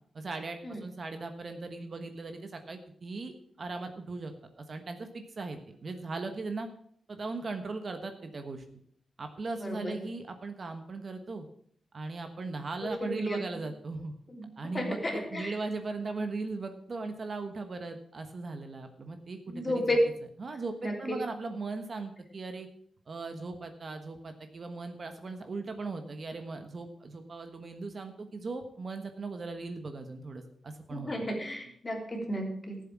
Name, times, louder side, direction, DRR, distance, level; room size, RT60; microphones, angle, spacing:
voice 1, 0.1-6.7 7.1-8.6 9.2-11.5 11.9-14.1 14.6-19.8 20.4-22.7 23.1-31.1, right 3 dB, 45° right, 6 dB, 1.3 m, -38 dB
voice 2, 9.6-10.0 12.8-13.4 14.3-14.5 14.7-15.5 19.5-20.0 20.8-21.2 30.9-32.8, equal, 25° left, 1 dB, 3.4 m, -32 dB
14.0 x 7.6 x 6.1 m, 0.62 s
wide cardioid pair, 130°, 0 cm